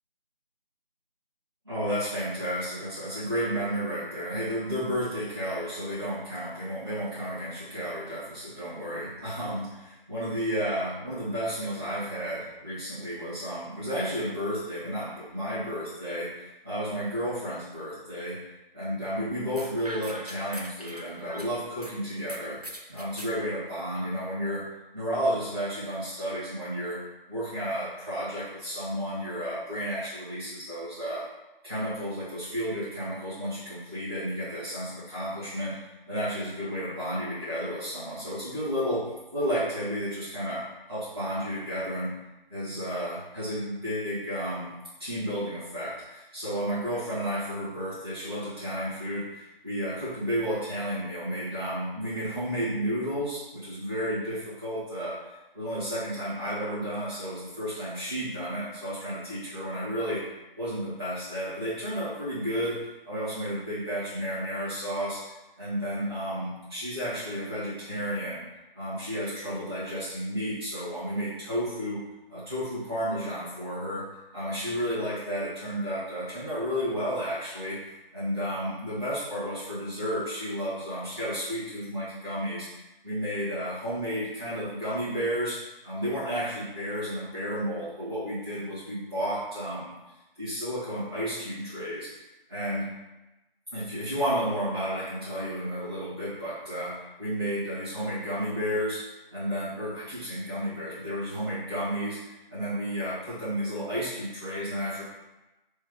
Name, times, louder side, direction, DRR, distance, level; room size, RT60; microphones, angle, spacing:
voice 1, 1.6-18.4 18.7-22.6 22.9-24.6 24.9-27.0 27.3-31.2 31.6-35.8 36.1-40.6 40.9-42.1 42.5-44.7 45.0-55.1 55.5-60.2 60.6-65.2 65.6-68.4 68.7-72.0 72.3-74.0 74.3-82.7 83.0-85.6 85.8-89.9 90.4-92.1 92.5-92.9 93.7-96.9 97.2-99.0 99.3-105.0, equal, 25° right, -14 dB, 1.2 m, -32 dB
sound 1, 19.5-21.9 22.3-23.3, right 1 dB, 45° right, 0.4 m, -41 dB
3.5 x 3.4 x 3.5 m, 1.0 s
figure-of-eight pair, 175°, 29 cm